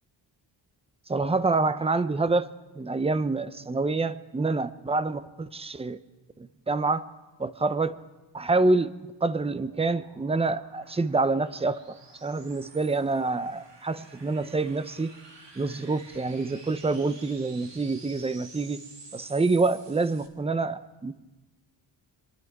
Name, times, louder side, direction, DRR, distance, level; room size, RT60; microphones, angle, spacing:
voice 1, 1.1-2.5 2.8-6.0 6.4-7.0 7.4-7.9 8.3-8.9 9.2-11.8 12.2-15.1 15.6-18.8 19.1-21.1, right 3 dB, 15° right, 13 dB, 0.6 m, -27 dB
sound 1, 8.9-20.3, right 3 dB, 70° right, 2.1 m, -51 dB
26.5 x 11.0 x 4.7 m, 1.1 s
wide cardioid pair, 125°, 45 cm